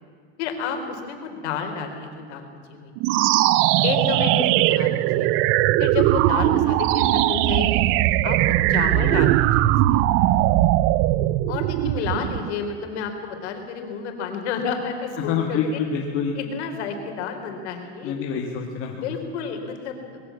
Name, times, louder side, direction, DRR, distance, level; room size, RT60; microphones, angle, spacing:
voice 1, 0.4-3.1 3.8-5.3 5.8-7.8 8.2-10.3 11.5-15.6 16.4-18.1 19.0-20.2, left 6 dB, 75° left, 5 dB, 4.0 m, -30 dB
sound 1, 3.0-12.5, right 15 dB, 40° right, 0.5 m, -20 dB
voice 2, 8.9-9.4 12.1-12.3 15.2-16.3 18.0-19.1, left 6 dB, 40° left, 1 dB, 2.0 m, -27 dB
21.0 x 15.5 x 8.4 m, 2.2 s
supercardioid pair, 160°, 34 cm